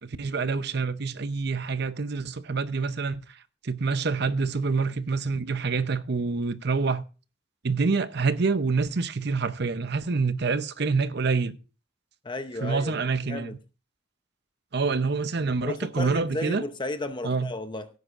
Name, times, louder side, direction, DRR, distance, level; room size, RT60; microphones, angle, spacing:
voice 1, 0.0-3.2 3.6-7.0 7.6-11.6 12.6-13.6 14.7-16.6 17.2-17.5, right 4 dB, 55° right, 0.7 m, -26 dB
voice 2, 12.2-13.0 13.2-13.6 15.6-17.9, left 2 dB, 25° left, 0.7 m, -33 dB
17.0 x 9.6 x 2.5 m
head